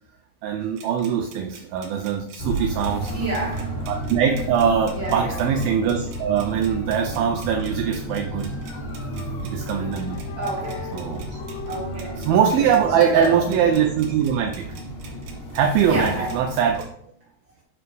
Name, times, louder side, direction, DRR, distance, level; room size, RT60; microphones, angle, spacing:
voice 1, 0.4-3.1 3.9-8.8 9.4-10.2 10.9-11.4 12.2-14.7 15.5-16.9, right 8 dB, 85° right, 2.1 m, -22 dB
sound 1, 0.6-16.9, right 6 dB, 70° right, 2.8 m, -48 dB
sound 2, 2.4-16.8, equal, 60° left, 2.8 m, -33 dB
voice 2, 3.1-3.9 4.9-5.4 10.3-11.0 11.7-12.3 12.9-13.4 15.9-16.4, right 2 dB, 50° right, 1.5 m, -29 dB
sound 3, 6.9-14.2, left 6 dB, 85° left, 2.5 m, -41 dB
7.8 x 4.8 x 3.2 m
omnidirectional pair, 4.7 m